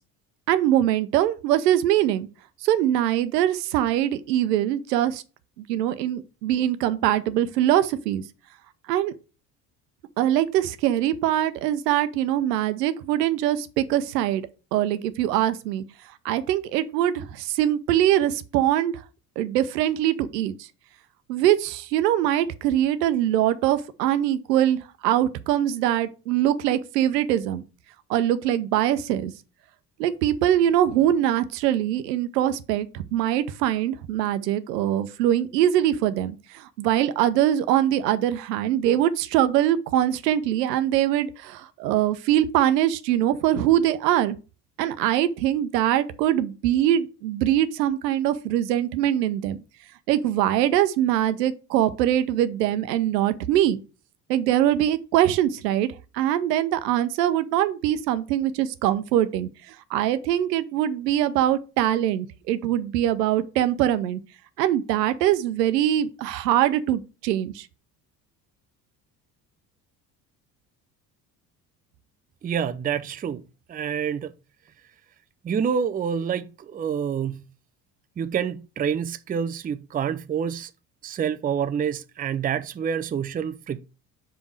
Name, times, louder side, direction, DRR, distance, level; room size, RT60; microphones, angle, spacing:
voice 1, 0.5-2.3 2.6-5.2 5.7-8.2 8.9-9.1 10.2-14.4 14.7-15.8 16.2-19.0 19.4-20.7 21.3-27.6 28.1-29.3 30.0-44.4 44.8-49.6 50.1-53.8 54.3-55.9 56.1-64.2 64.6-67.7, right 12 dB, 75° right, 0.8 m, -23 dB
voice 2, 72.4-73.4 73.7-74.3 75.4-77.4 78.2-80.7 81.0-83.8, right 7 dB, 20° right, 0.5 m, -27 dB
5.3 x 4.4 x 6.2 m
hypercardioid pair, 60°, 49 cm